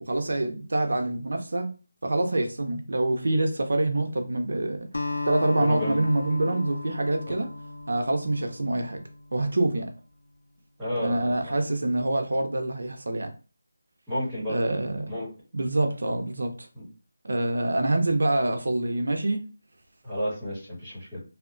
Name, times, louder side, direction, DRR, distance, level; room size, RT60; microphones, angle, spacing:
voice 1, 0.0-1.7 2.0-4.9 5.2-7.5 7.9-9.0 9.3-9.9 11.0-13.3 14.5-15.1 15.5-16.7 17.2-19.4, right 2 dB, 75° right, 0.5 m, -26 dB
Acoustic guitar, 4.9-9.4, left 3 dB, 85° left, 0.3 m, -35 dB
voice 2, 5.6-6.0 7.3-7.4 10.8-11.5 14.1-14.7 15.1-15.3 16.7-16.9 20.0-21.2, left 1 dB, 5° right, 1.1 m, -31 dB
2.7 x 2.1 x 2.4 m
figure-of-eight pair, 170°, 0 cm